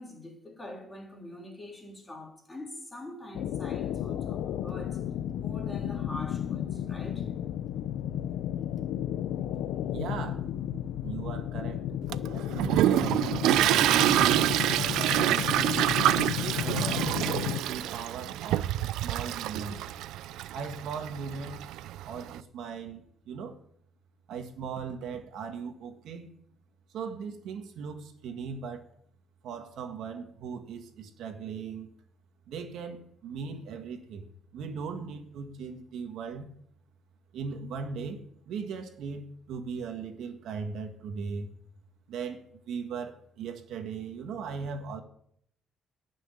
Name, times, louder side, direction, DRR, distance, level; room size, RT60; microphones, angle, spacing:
voice 1, 0.0-5.0 5.4-7.3, left 1 dB, 10° left, -1 dB, 3.8 m, -44 dB
sound 1, 3.3-17.6, left 10 dB, 85° left, 0.7 m, -33 dB
voice 2, 9.9-10.5 11.0-11.8 12.3-14.1 14.8-15.8 16.3-19.9 20.5-21.6 22.0-23.6 24.3-26.3 26.9-28.8 29.4-31.9 32.5-34.3 34.5-36.5 37.3-41.5 42.1-45.0, right 5 dB, 65° right, 5 dB, 1.8 m, -38 dB
Toilet flush, 12.1-22.3, right 13 dB, 90° right, 0.5 m, -27 dB
18.5 x 6.4 x 9.1 m, 0.69 s
cardioid pair, 170°, 0 cm